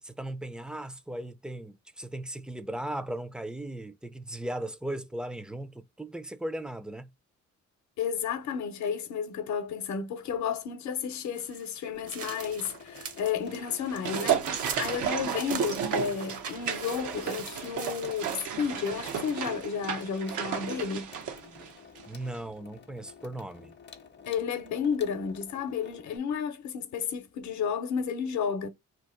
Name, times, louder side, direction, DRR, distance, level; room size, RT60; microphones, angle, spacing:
voice 1, 0.0-7.1 21.4-21.7 22.1-23.8, right 1 dB, 5° right, 0.4 m, -37 dB
voice 2, 8.0-21.1 24.3-28.7, left 7 dB, 70° left, 0.8 m, -32 dB
sound 1, 11.2-13.4 13.7-19.5, right 6 dB, 50° right, 0.8 m, -42 dB
Water tap faucet / Sink (filling or washing), 11.9-26.2, left 6 dB, 35° left, 0.6 m, -51 dB
sound 2, 13.5-22.1 22.3-22.4, right 8 dB, 85° right, 0.8 m, -33 dB
2.9 x 2.5 x 3.7 m
cardioid pair, 90°, 30 cm